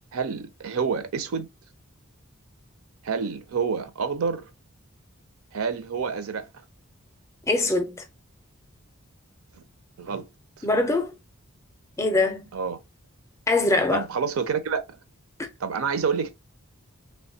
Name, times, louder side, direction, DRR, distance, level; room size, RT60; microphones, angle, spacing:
voice 1, 0.1-1.5 3.0-4.5 5.5-6.5 9.6-9.7 10.0-10.3 10.6-10.7 12.5-12.8 13.9-15.0 15.6-16.3, right 5 dB, 80° right, 0.5 m, -28 dB
voice 2, 7.5-8.0 10.6-11.1 12.0-12.4 13.5-14.0, left 2 dB, 15° left, 0.4 m, -22 dB
3.1 x 2.1 x 2.6 m
head